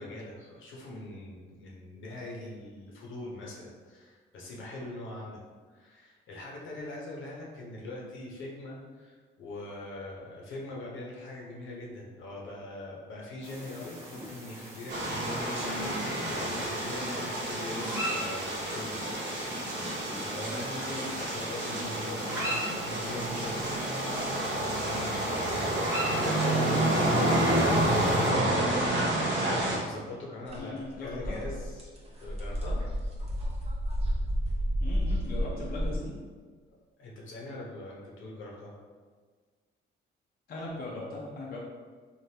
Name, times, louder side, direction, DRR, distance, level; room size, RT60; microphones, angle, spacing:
voice 1, 0.0-5.4 5.7-19.0 20.2-23.7 24.0-26.7 27.6-28.0 29.4-31.9 32.1-32.8 37.0-38.7, left 2 dB, 75° left, -3 dB, 0.8 m, -42 dB
sound 1, 13.4-28.3, equal, 15° right, 1.2 m, -41 dB
sound 2, 14.9-29.8, right 1 dB, 65° right, 0.9 m, -29 dB
voice 2, 26.2-27.3 30.6-31.4 34.8-36.2 40.5-41.6, left 2 dB, 50° left, -4 dB, 0.6 m, -38 dB
sound 3, 30.5-30.6 30.9-36.0, equal, 30° right, 0.7 m, -31 dB
3.3 x 2.5 x 2.7 m, 1.5 s
cardioid pair, 90°, 20 cm